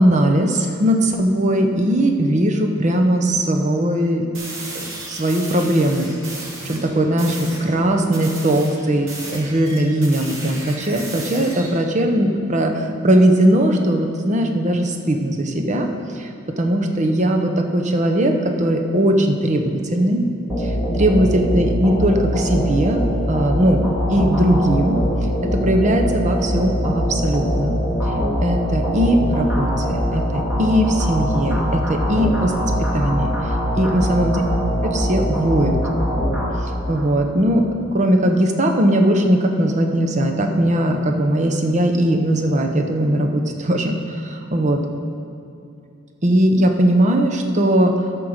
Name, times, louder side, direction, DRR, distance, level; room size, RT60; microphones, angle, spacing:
voice 1, 0.0-4.2 4.7-15.9 16.1-16.3 16.6-18.3 18.6-20.2 20.6-23.0 23.3-25.0 25.6-27.8 28.4-32.5 32.9-33.3 33.8-34.4 34.8-35.8 36.9-37.6 37.9-44.8 46.2-47.9, right 1 dB, 35° right, 3 dB, 0.8 m, -19 dB
sound 1, 4.3-6.8 7.2-7.6 8.1-11.8, right 2 dB, 75° right, 2.4 m, -34 dB
sound 2, 20.5-37.1, equal, 10° right, 2.1 m, -22 dB
13.5 x 4.7 x 6.5 m, 2.6 s
head